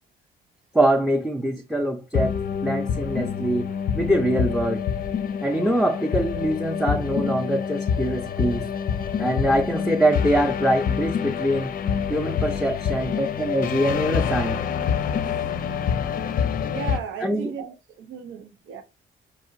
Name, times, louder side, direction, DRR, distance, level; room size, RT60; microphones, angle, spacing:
voice 1, 0.7-2.4 2.6-4.8 5.4-8.7 9.2-11.7 12.1-14.5 17.2-17.5, right 1 dB, ahead, 0.5 m, -23 dB
Years lost, 2.1-17.0, left 7 dB, 45° left, 0.5 m, -27 dB
voice 2, 16.7-18.8, right 7 dB, 80° right, 0.6 m, -35 dB
4.9 x 2.8 x 2.6 m
cardioid pair, 90°, 20 cm